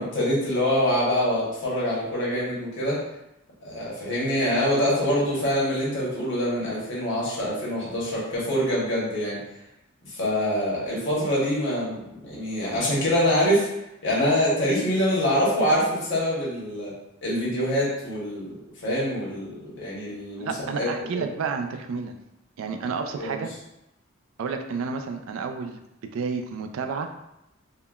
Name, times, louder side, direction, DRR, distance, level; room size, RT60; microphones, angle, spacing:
voice 1, 0.0-3.0 3.6-9.4 10.1-13.7 14.0-16.9 17.2-18.5 18.8-20.9 21.1-21.2 23.2-23.4, equal, 60° left, -6 dB, 1.0 m, -25 dB
voice 2, 20.4-22.1 22.6-23.5 24.4-27.1, right 5 dB, 85° right, 6 dB, 0.3 m, -31 dB
3.6 x 2.2 x 2.3 m, 0.86 s
head